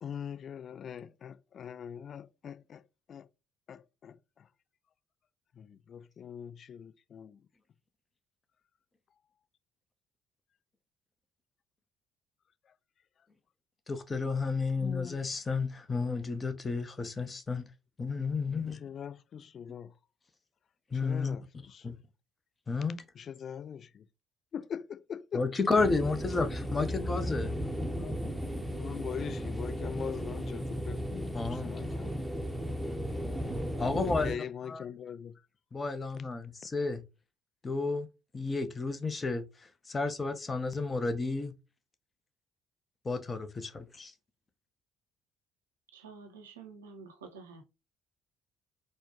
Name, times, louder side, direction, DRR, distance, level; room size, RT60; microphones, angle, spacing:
voice 1, 0.0-2.8 3.1-3.3 3.7-4.5 5.5-7.5 12.7-12.8 14.8-15.2 18.7-19.9 20.9-22.0 23.1-24.1 24.5-25.5 28.0-28.2 28.7-32.2 34.1-35.4, left 8 dB, 50° left, 0.4 m, -42 dB
voice 2, 13.9-17.7 18.0-18.8 20.9-21.4 21.8-21.9 22.7-23.0 25.3-27.6 31.3-31.7 33.8-34.3 34.7-34.8 35.7-37.0 37.6-38.1 38.3-39.4 39.9-41.5 43.0-44.1, left 4 dB, 30° left, 0.8 m, -31 dB
sound 1, 25.8-34.4, equal, ahead, 0.8 m, -35 dB
voice 3, 45.9-47.6, right 4 dB, 80° right, 0.6 m, -49 dB
4.3 x 2.2 x 2.9 m
figure-of-eight pair, 50°, 0 cm